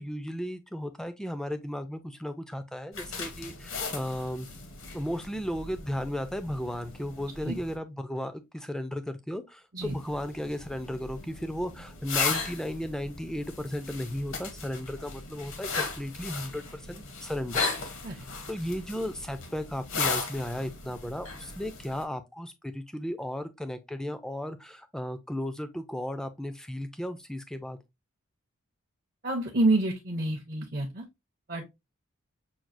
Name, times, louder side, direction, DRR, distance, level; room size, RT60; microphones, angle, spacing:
voice 1, 0.0-4.5 4.9-17.7 18.1-27.8, equal, 5° left, 0.3 m, -35 dB
sound 1, 2.9-7.8 9.8-22.0, left 4 dB, 65° left, 0.9 m, -36 dB
voice 2, 29.2-31.1 31.5-31.6, right 2 dB, 40° right, 0.6 m, -28 dB
5.9 x 2.3 x 2.5 m
head